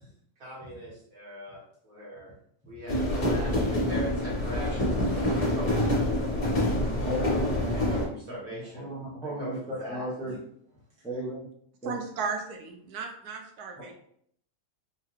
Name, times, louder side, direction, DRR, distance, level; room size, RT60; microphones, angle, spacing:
voice 1, 0.4-2.3 2.7-6.1 7.7-8.9 9.2-10.4, equal, 65° right, -6 dB, 2.0 m, -41 dB
sound 1, 2.9-8.1, left 1 dB, 60° left, 1.7 m, -26 dB
voice 2, 7.0-7.5 7.9-8.0 8.7-10.3 11.0-11.5 11.8-12.0, equal, 5° left, -4 dB, 0.6 m, -34 dB
voice 3, 11.8-13.9, right 5 dB, 85° right, 2 dB, 1.1 m, -35 dB
4.3 x 2.4 x 3.1 m, 0.65 s
omnidirectional pair, 1.6 m